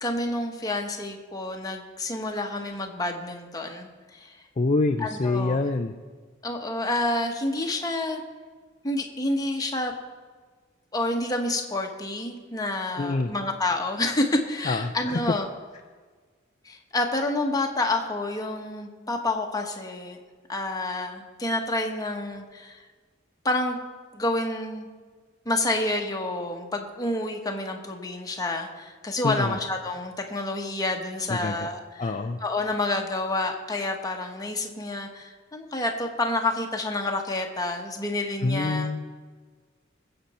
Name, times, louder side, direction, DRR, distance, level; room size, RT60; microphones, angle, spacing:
voice 1, 0.0-4.3 5.0-5.6 6.4-8.2 8.8-9.9 10.9-15.5 16.6-20.2 20.5-22.8 23.4-23.8 24.1-24.9 25.4-32.2 32.4-38.9, left 2 dB, 20° left, 2 dB, 1.3 m, -29 dB
voice 2, 4.6-5.9 13.0-13.3 14.6-15.2 29.2-29.6 31.3-31.7 32.0-32.4 38.4-39.1, left 3 dB, 35° left, 4 dB, 0.5 m, -26 dB
21.5 x 8.0 x 4.3 m, 1.5 s
head